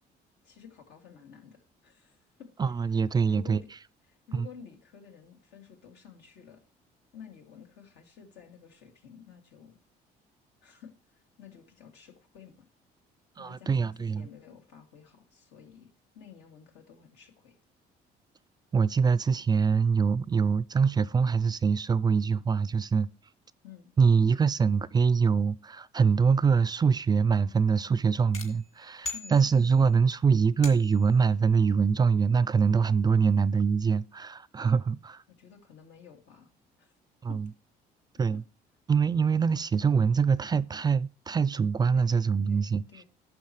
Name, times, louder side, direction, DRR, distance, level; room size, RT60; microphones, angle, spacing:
voice 1, 0.4-2.5 2.9-3.7 4.1-6.6 7.1-9.8 10.6-12.7 13.4-17.6 23.6-23.9 29.1-29.4 35.3-36.5 36.8-36.9 37.3-37.4 41.9-42.1 42.5-43.0, left 7 dB, 80° left, 2.6 m, -51 dB
voice 2, 2.6-3.6 4.4-4.5 13.4-14.3 18.7-23.1 24.0-35.2 37.2-37.5 38.2-38.4 38.9-43.0, right 5 dB, 25° right, 0.4 m, -24 dB
sound 1, 28.3-30.0 30.6-31.2, left 4 dB, 35° left, 2.7 m, -41 dB
11.5 x 7.2 x 3.1 m
cardioid pair, 110°, 17 cm